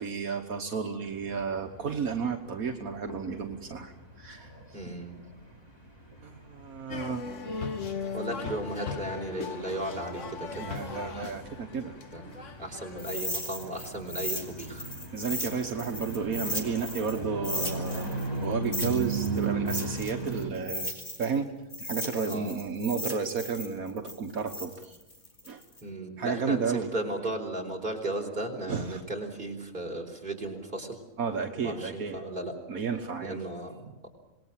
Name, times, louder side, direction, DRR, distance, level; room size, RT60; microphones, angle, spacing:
voice 1, 0.0-4.5 6.2-7.9 10.5-11.9 15.1-20.9 21.2-21.5 21.8-25.0 25.5-25.6 26.2-26.9 28.7-29.0 31.2-32.2 32.7-33.4, right 5 dB, 75° right, 3 dB, 1.8 m, -32 dB
sound 1, 1.1-20.5, right 3 dB, 15° left, 3.6 m, -38 dB
voice 2, 4.7-5.2 8.1-10.7 12.1-14.9 22.3-22.6 25.8-31.0 31.6-32.6 33.2-34.1, right 1 dB, 35° right, 1 dB, 4.7 m, -35 dB
sound 2, 6.9-13.2, left 5 dB, 60° left, 1.6 m, -38 dB
sound 3, 13.0-17.2 17.4-21.4 21.7-25.8, left 1 dB, 35° left, 3.7 m, -36 dB
27.0 x 19.5 x 7.5 m, 0.98 s
omnidirectional pair, 1.5 m